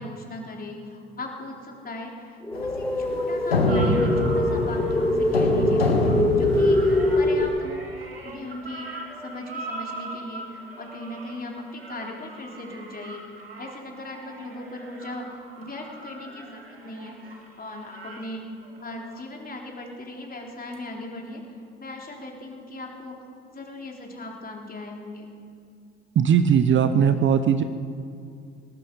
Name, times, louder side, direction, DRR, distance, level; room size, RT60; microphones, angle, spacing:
voice 1, 0.0-5.8 6.4-7.8 8.2-13.3 13.6-17.2 17.6-18.5 18.8-23.2 23.5-25.3, left 2 dB, 30° left, 1 dB, 3.7 m, -38 dB
sound 1, 2.4-7.4, left 1 dB, 5° left, 1.7 m, -23 dB
sound 2, 2.5-7.4, left 2 dB, 90° left, 1.4 m, -26 dB
sound 3, 3.7-19.2 20.7-20.8, right 2 dB, 90° right, 1.7 m, -41 dB
voice 2, 26.2-27.6, right 8 dB, 40° right, 10 dB, 0.9 m, -19 dB
18.5 x 14.0 x 5.4 m, 2.5 s
figure-of-eight pair, 55°, 29 cm